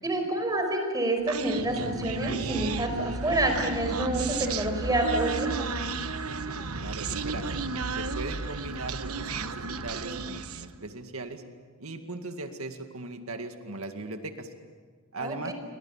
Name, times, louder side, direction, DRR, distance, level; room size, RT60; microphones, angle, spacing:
voice 1, 0.0-5.7 15.2-15.5, right 1 dB, 20° right, 4 dB, 5.3 m, -28 dB
Human voice, 1.3-10.8, right 4 dB, 90° right, 1.2 m, -33 dB
voice 2, 6.8-7.5 7.9-11.4 11.8-14.5 15.1-15.5, right 2 dB, 70° right, 6 dB, 2.2 m, -38 dB
29.0 x 24.0 x 7.4 m, 1.5 s
head